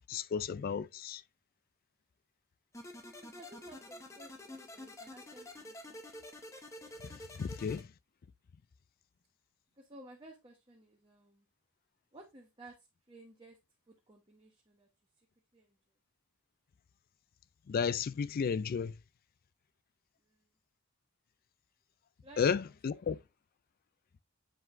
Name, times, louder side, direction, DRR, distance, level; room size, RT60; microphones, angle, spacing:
voice 1, 0.1-1.2 7.4-7.9 17.7-18.9 22.4-23.2, left 6 dB, 45° left, 0.3 m, -32 dB
sound 1, 2.7-7.8, left 1 dB, 15° left, 0.9 m, -49 dB
voice 2, 3.2-6.0 9.8-11.5 12.1-12.8 13.1-13.6 13.9-14.9 15.5-15.8 20.3-20.4 22.2-22.5 22.9-23.0, right 1 dB, 25° right, 1.1 m, -55 dB
7.7 x 4.8 x 2.5 m
head